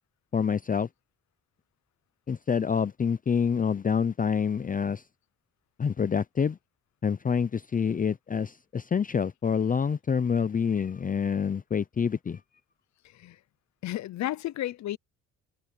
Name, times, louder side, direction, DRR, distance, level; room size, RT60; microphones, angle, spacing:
voice 1, 0.3-0.9 2.3-5.0 5.8-6.6 7.0-12.4, left 6 dB, 25° left, 0.6 m, -27 dB
voice 2, 13.8-15.0, left 14 dB, 65° left, 0.7 m, -32 dB
cardioid pair, 90°, 30 cm